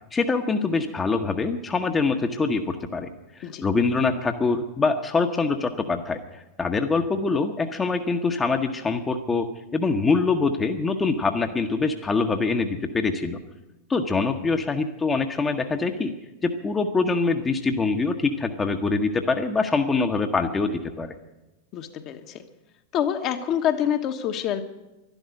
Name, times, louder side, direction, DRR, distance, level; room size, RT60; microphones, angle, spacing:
voice 1, 0.1-3.1 3.3-9.5 9.7-13.4 13.9-16.1 16.4-21.1, left 4 dB, 15° left, 5 dB, 1.0 m, -24 dB
voice 2, 21.7-22.4 22.9-24.6, left 9 dB, 35° left, 6 dB, 1.2 m, -26 dB
12.0 x 12.0 x 9.5 m, 1.0 s
figure-of-eight pair, 90°, 0 cm